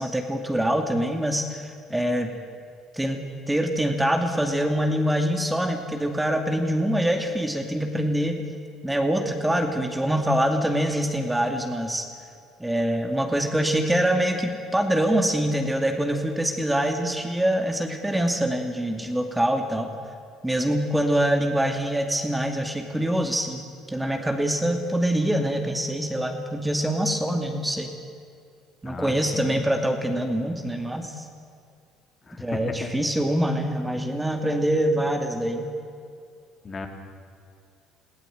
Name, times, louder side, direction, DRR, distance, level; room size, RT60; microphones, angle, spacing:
voice 1, 0.0-2.3 2.9-3.2 3.5-8.5 8.8-12.1 12.6-19.9 20.4-27.9 28.8-31.3 32.4-35.7, right 1 dB, 10° right, 4 dB, 2.5 m, -24 dB
voice 2, 28.8-29.7 32.3-32.9 36.6-36.9, left 3 dB, 40° left, 4 dB, 3.3 m, -34 dB
20.5 x 16.0 x 9.3 m, 2.4 s
hypercardioid pair, 65°, 0 cm